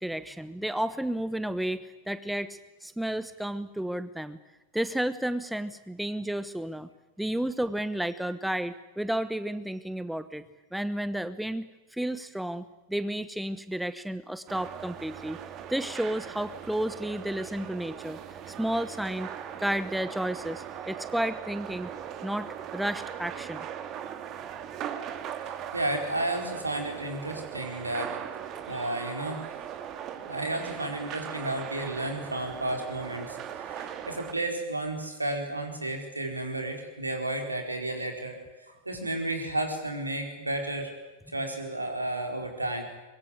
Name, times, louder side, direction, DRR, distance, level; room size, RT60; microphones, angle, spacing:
voice 1, 0.0-4.4 4.7-6.9 7.2-10.5 10.7-15.4 15.7-18.2 18.5-19.3 19.6-21.9 22.2-23.7 28.7-28.9, right 1 dB, ahead, 14 dB, 1.0 m, -32 dB
sound 1, 14.5-34.3, right 9 dB, 35° right, 2.1 m, -39 dB
voice 2, 25.7-28.2 28.7-29.4 30.2-38.4 38.7-40.9 41.3-42.9, right 1 dB, 80° right, 4 dB, 4.6 m, -32 dB
23.5 x 22.5 x 9.7 m, 1.1 s
figure-of-eight pair, 90°, 0 cm